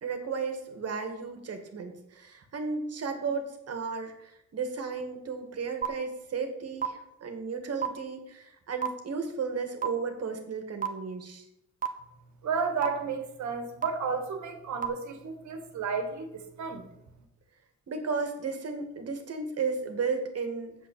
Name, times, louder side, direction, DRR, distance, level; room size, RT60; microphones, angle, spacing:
voice 1, 0.0-11.4 17.9-20.8, right 5 dB, 55° right, 6 dB, 2.3 m, -34 dB
sound 1, 5.8-5.9 6.8-6.9 7.8-7.9 8.8-8.9 9.8-9.9 10.8-10.9 11.8-11.9 12.8-12.9 13.8-13.9 14.8-14.9, right 10 dB, 25° right, 1.4 m, -27 dB
voice 2, 12.4-16.9, right 5 dB, 70° right, 6 dB, 2.2 m, -32 dB
7.4 x 7.4 x 8.4 m, 0.82 s
cardioid pair, 90°, 30 cm